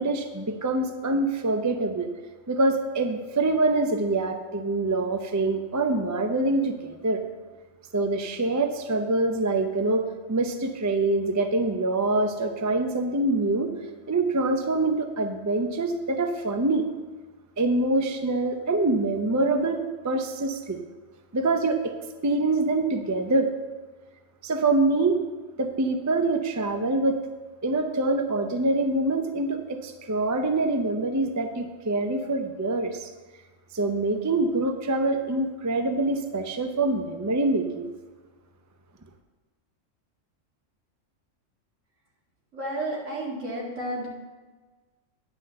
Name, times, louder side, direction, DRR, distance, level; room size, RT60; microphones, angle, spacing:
voice 1, 0.0-2.1 2.5-7.2 7.9-13.7 14.1-16.8 17.6-20.8 21.3-21.9 22.2-23.5 24.4-25.2 25.6-27.2 27.6-33.1 33.7-37.9, right 2 dB, 20° right, 6 dB, 0.5 m, -25 dB
voice 2, 42.5-44.2, right 1 dB, 75° right, -4 dB, 2.7 m, -32 dB
9.8 x 6.1 x 6.5 m, 1.3 s
omnidirectional pair, 1.3 m